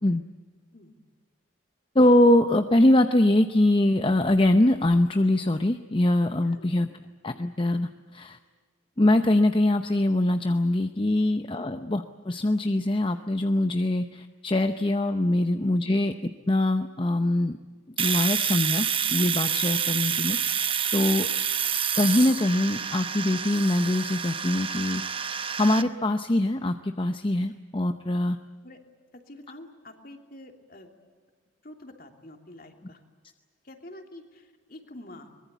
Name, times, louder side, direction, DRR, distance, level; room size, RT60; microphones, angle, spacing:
voice 1, 1.9-6.9 7.2-8.4 9.0-16.1 16.5-17.6 18.0-21.3 21.9-25.0 25.6-28.4, left 1 dB, 25° left, 8 dB, 0.7 m, -23 dB
voice 2, 6.4-7.1 11.5-11.7 15.8-15.9 28.6-28.8 29.1-30.9 31.6-33.0 33.6-35.3, left 1 dB, 45° left, 4 dB, 3.1 m, -47 dB
Domestic sounds home sounds, 18.0-25.8, right 8 dB, 25° right, 0.9 m, -28 dB
23.5 x 22.0 x 8.3 m, 1.5 s
head